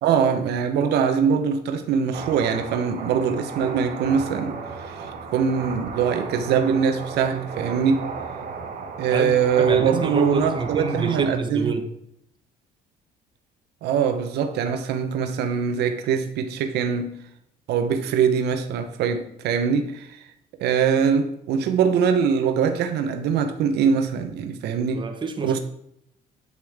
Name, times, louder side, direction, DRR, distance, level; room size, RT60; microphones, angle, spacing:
voice 1, 0.0-8.1 9.0-11.7 13.8-17.2 17.7-20.2 20.6-25.1 25.4-25.6, right 7 dB, 75° right, 0.8 m, -23 dB
sound 1, 2.1-11.3, right 4 dB, 55° right, 1.8 m, -34 dB
voice 2, 9.1-11.9 24.7-25.6, right 4 dB, 30° right, 1.1 m, -28 dB
8.2 x 8.2 x 3.5 m
cardioid pair, 110°, 17 cm